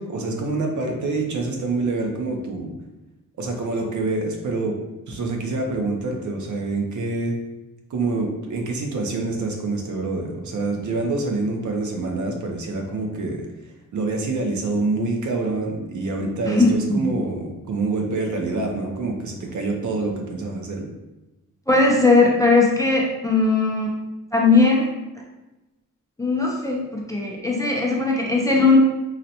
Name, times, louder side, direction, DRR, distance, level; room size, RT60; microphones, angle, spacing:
voice 1, 0.0-2.7 3.4-4.8 5.1-7.4 7.9-13.4 13.9-20.9, right 3 dB, 65° right, 2 dB, 0.6 m, -26 dB
voice 2, 16.4-17.0 21.7-24.0 24.3-24.9 26.2-28.8, left 3 dB, 10° left, -2 dB, 0.3 m, -18 dB
4.0 x 2.1 x 2.8 m, 1.0 s
wide cardioid pair, 155°, 32 cm